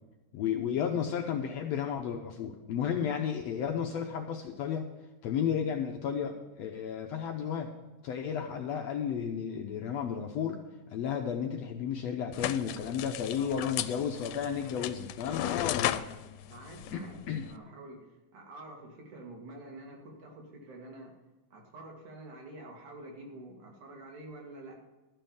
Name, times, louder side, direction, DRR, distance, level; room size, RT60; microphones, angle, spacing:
voice 1, 0.3-4.9 5.2-7.7 8.0-10.6 10.9-16.0 16.9-17.5, left 8 dB, 70° left, 3 dB, 1.7 m, -33 dB
sound 1, 12.3-17.6, left 13 dB, 90° left, 2.1 m, -36 dB
voice 2, 16.5-21.1 21.5-24.8, right 2 dB, 70° right, -1 dB, 3.5 m, -48 dB
13.0 x 5.7 x 7.0 m, 1.1 s
omnidirectional pair, 3.6 m